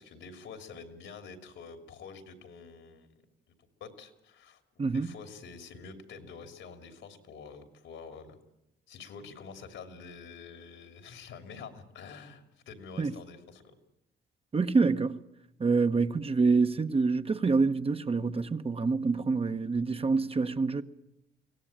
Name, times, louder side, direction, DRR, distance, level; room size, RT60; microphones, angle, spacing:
voice 1, 0.0-3.2 3.8-8.4 8.9-13.8, left 5 dB, 75° left, 3.1 m, -47 dB
voice 2, 4.8-5.1 13.0-13.1 14.5-15.2 15.6-20.8, right 4 dB, 30° right, 1.0 m, -26 dB
23.5 x 17.5 x 8.9 m
cardioid pair, 90°, 20 cm